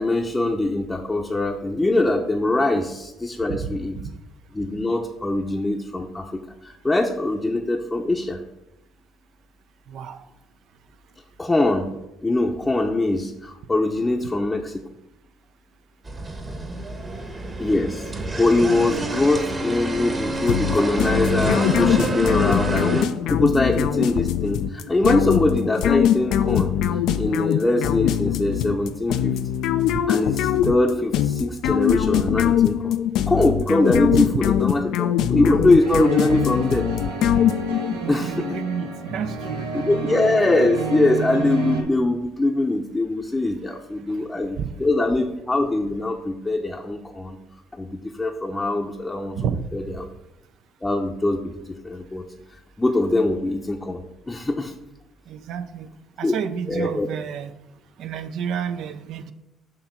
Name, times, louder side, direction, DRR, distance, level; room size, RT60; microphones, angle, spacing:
voice 1, 0.0-3.9 4.5-8.4 11.4-11.9 12.2-14.8 17.6-18.1 18.4-26.7 27.2-29.3 30.1-32.9 33.3-36.9 38.1-38.4 39.7-47.4 47.7-49.4 49.7-50.1 50.8-52.2 52.8-54.0 54.3-54.7 56.2-56.3 56.7-57.1, left 2 dB, 20° left, 1 dB, 0.6 m, -22 dB
voice 2, 3.5-4.1 9.9-10.2 17.0-17.2 37.9-39.6 41.3-41.4 44.1-44.2 44.6-44.7 49.4-49.6 55.3-55.9 56.2-57.5 58.0-59.3, right 7 dB, 65° right, 10 dB, 0.4 m, -30 dB
sound 1, 16.1-23.0, right 2 dB, 30° right, 1.1 m, -28 dB
sound 2, 20.5-38.0, left 10 dB, 70° left, 0.3 m, -22 dB
sound 3, 35.8-41.8, right 4 dB, 90° right, 0.8 m, -30 dB
6.6 x 2.9 x 5.8 m, 0.91 s
hypercardioid pair, 55°, 0 cm